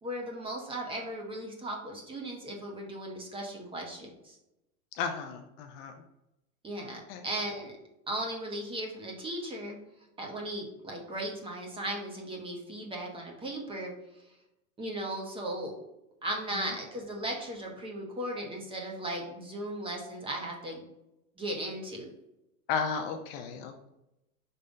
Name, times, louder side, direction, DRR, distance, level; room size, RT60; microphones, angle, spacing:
voice 1, 0.0-4.4 6.6-7.7 8.1-9.8 10.2-13.9 14.8-15.8 16.2-20.8 21.4-22.1, right 1 dB, 10° right, 0 dB, 1.1 m, -37 dB
voice 2, 4.9-5.9 7.1-7.3 16.5-16.7 22.7-23.9, left 6 dB, 45° left, 5 dB, 0.7 m, -34 dB
5.5 x 3.3 x 5.2 m, 0.89 s
supercardioid pair, 140°, 42 cm